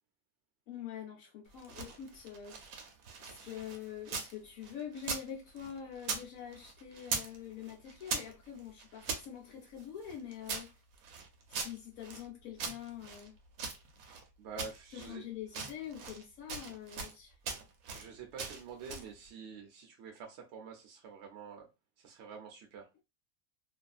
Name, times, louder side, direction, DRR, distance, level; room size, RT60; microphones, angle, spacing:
voice 1, 0.7-2.8 3.2-10.7 11.5-13.3 14.9-17.4, left 9 dB, 75° left, 0.9 m, -45 dB
sound 1, 1.5-4.3 4.6-6.3 6.5-7.4 7.6-9.3 9.8-12.3 12.6-14.2 14.6-15.2 15.5-16.2 16.5-17.2 17.4-18.1 18.4-19.1, right 5 dB, 85° right, 1.1 m, -41 dB
voice 2, 14.4-15.2 17.9-21.7 22.0-22.9, right 5 dB, 65° right, 0.7 m, -47 dB
2.6 x 2.4 x 2.3 m
omnidirectional pair, 1.5 m